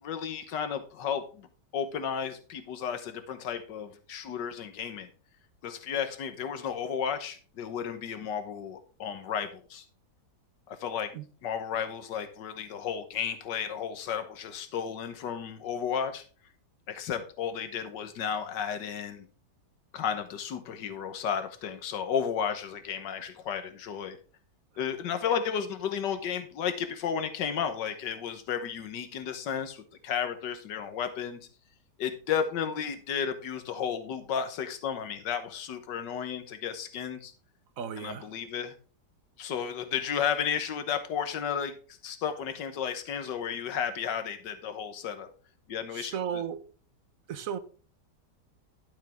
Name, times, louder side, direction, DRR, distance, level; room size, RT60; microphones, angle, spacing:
voice 1, 0.0-1.5 1.7-5.1 5.6-9.9 10.7-11.1 11.4-16.3 16.9-19.3 19.9-24.2 24.8-31.4 32.0-37.3 38.0-38.7 39.4-45.3 45.7-46.4, left 7 dB, 90° left, 1.7 m, -33 dB
voice 2, 37.8-38.3 45.9-46.7 47.3-47.6, right 8 dB, 60° right, 1.2 m, -35 dB
12.0 x 7.5 x 3.5 m
omnidirectional pair, 1.8 m